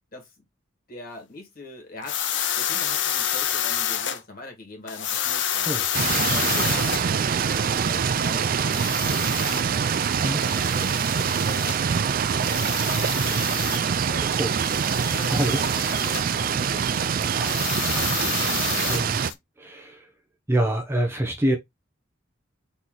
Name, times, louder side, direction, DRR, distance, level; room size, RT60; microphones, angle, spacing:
voice 1, 0.1-0.4 0.9-2.2 2.6-5.9 6.3-8.9 9.5-10.0 10.3-11.1 11.4-13.4 13.7-14.4 15.0-18.8, left 2 dB, 45° left, 2.0 m, -42 dB
sound 1, 2.0-4.2 4.9-7.1 8.6-9.6 10.4-11.8 12.4-13.8 14.5-16.3 17.4-19.3, left 9 dB, 65° left, 0.6 m, -29 dB
sound 2, 5.9-19.3, right 7 dB, 45° right, 0.4 m, -24 dB
voice 2, 10.2-10.6 14.4-14.5 15.3-15.6 18.9-19.2 19.6-20.1 20.5-21.6, right 1 dB, 10° right, 0.7 m, -25 dB
4.2 x 3.1 x 3.8 m
head